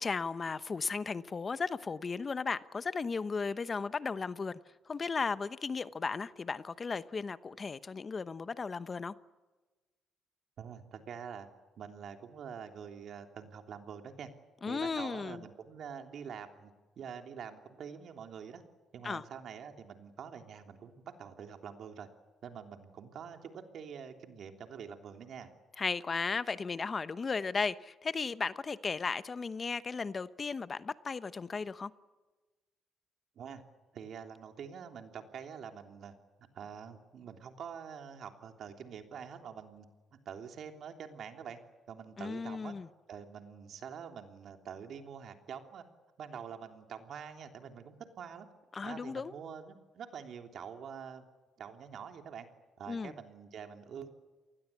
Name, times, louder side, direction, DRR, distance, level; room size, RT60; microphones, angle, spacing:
voice 1, 0.0-4.6 4.9-9.1 14.6-15.4 19.0-19.2 25.8-31.9 42.2-42.9 48.7-49.3 52.9-53.1, left 4 dB, 35° left, 0.9 m, -35 dB
voice 2, 10.6-11.5 11.8-14.3 14.7-18.6 18.9-20.9 21.2-22.1 22.4-25.5 33.3-33.6 33.9-36.1 36.5-39.9 40.2-41.6 41.9-42.8 43.1-45.8 46.2-48.5 48.8-51.3 51.6-52.5 52.8-54.1, right 7 dB, 65° right, 3.2 m, -46 dB
28.5 x 20.0 x 8.5 m
cardioid pair, 90°, 0 cm